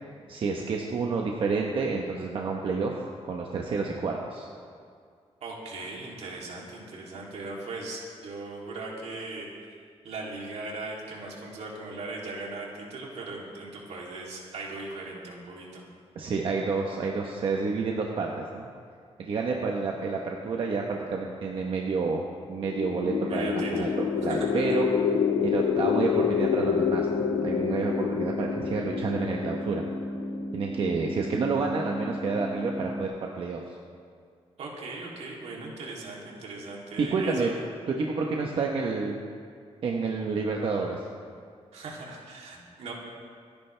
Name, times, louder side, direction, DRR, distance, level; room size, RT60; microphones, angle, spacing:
voice 1, 0.3-2.9 3.2-4.5 16.1-18.7 19.2-24.9 25.4-29.8 30.5-33.6 37.0-37.5 37.9-39.2 39.8-41.0, right 4 dB, 55° right, 0 dB, 1.1 m, -29 dB
voice 2, 5.4-9.5 10.0-15.8 23.2-23.9 24.3-24.8 34.6-37.5 41.7-42.9, right 3 dB, 80° right, -3 dB, 3.0 m, -39 dB
sound 1, 22.6-30.7, left 8 dB, 75° left, 0.4 m, -28 dB
sound 2, 23.0-33.0, equal, 5° left, 0.6 m, -35 dB
27.0 x 10.5 x 3.4 m, 2.2 s
wide cardioid pair, 180°, 11 cm